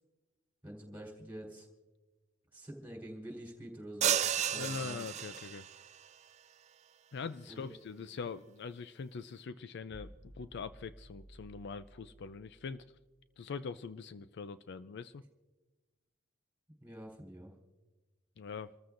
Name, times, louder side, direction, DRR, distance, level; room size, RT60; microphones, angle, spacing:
voice 1, 0.6-1.7 2.5-5.1 7.5-7.7 16.8-17.5, right 1 dB, 10° right, -1 dB, 3.8 m, -47 dB
sound 1, 4.0-5.8, right 10 dB, 35° right, 0.4 m, -32 dB
voice 2, 4.5-5.7 7.1-10.1 10.4-12.8 13.4-15.2 18.4-18.7, left 5 dB, 60° left, 13 dB, 0.4 m, -43 dB
sound 2, 9.9-13.3, equal, 10° left, 5.4 m, -55 dB
28.0 x 14.0 x 2.6 m, 1.2 s
head